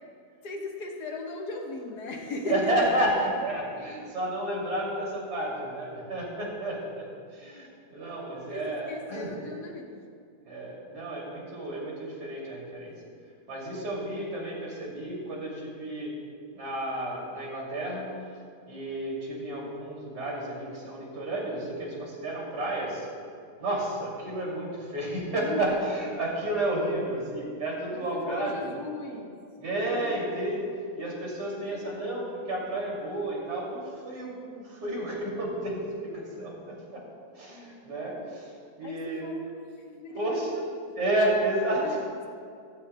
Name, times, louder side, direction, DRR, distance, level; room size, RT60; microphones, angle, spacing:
voice 1, 0.4-3.3 8.3-9.9 25.4-25.8 27.9-29.4 29.8-30.2 31.7-32.1 38.8-40.5 41.7-42.3, left 2 dB, 85° left, 1 dB, 1.8 m, -37 dB
voice 2, 2.5-7.0 7.3-9.3 10.5-12.9 13.5-16.1 16.5-18.2 18.7-23.1 23.6-28.6 29.6-30.6 30.9-37.0 37.3-39.2 40.2-40.5 41.0-41.8, right 1 dB, 90° right, -4 dB, 3.3 m, -31 dB
15.0 x 14.0 x 2.2 m, 2.4 s
omnidirectional pair, 1.7 m